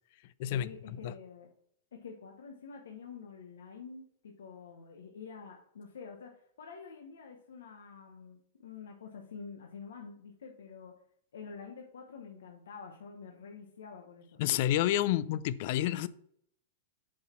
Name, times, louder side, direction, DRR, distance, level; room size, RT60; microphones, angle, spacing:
voice 1, 0.5-1.5 1.9-10.9 11.3-14.4, left 5 dB, 80° left, 1.0 m, -48 dB
voice 2, 14.4-16.1, left 12 dB, 55° left, 0.4 m, -29 dB
7.6 x 4.1 x 4.3 m
hypercardioid pair, 120°, 0 cm